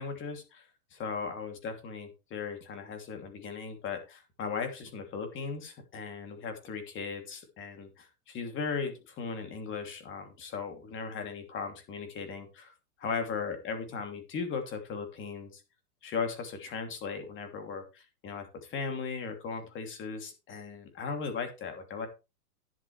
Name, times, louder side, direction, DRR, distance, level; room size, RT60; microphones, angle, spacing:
voice 1, 0.0-12.7 13.0-15.6 16.0-22.1, left 5 dB, 25° left, 6 dB, 2.9 m, -37 dB
11.5 x 10.5 x 3.3 m, 0.28 s
hypercardioid pair, 140°, 47 cm